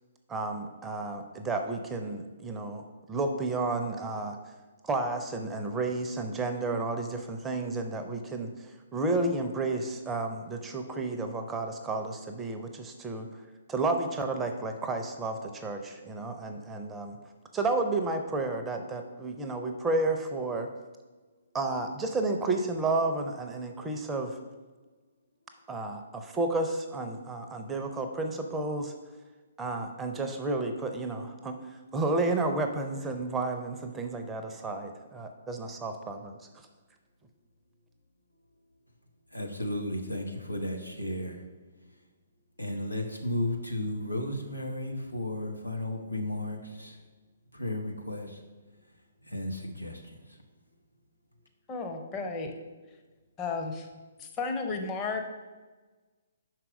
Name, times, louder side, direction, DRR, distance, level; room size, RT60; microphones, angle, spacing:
voice 1, 0.3-4.4 4.8-13.3 13.7-17.2 17.5-20.7 21.5-24.4 25.7-28.9 29.6-31.6 31.9-36.5, right 2 dB, 10° right, 5 dB, 0.6 m, -31 dB
voice 2, 39.3-41.4 42.6-47.0 47.5-48.4 49.2-50.4, left 1 dB, 90° left, 2 dB, 1.0 m, -34 dB
voice 3, 51.7-52.6 53.4-53.9 54.2-55.3, left 4 dB, 20° left, 3 dB, 0.8 m, -33 dB
5.7 x 4.7 x 5.1 m, 1.3 s
figure-of-eight pair, 130°, 0 cm